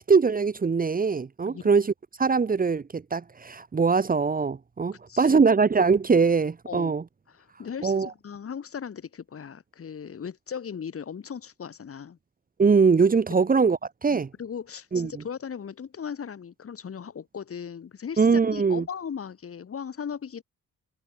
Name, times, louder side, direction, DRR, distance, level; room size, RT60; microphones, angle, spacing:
voice 1, 0.0-7.0 7.8-8.1 12.6-14.3 14.9-15.2 18.2-18.8, right 5 dB, 30° right, 1.4 m, -22 dB
voice 2, 7.3-12.2 14.1-20.4, left 7 dB, 50° left, 6.7 m, -37 dB
cardioid pair, 90°, 30 cm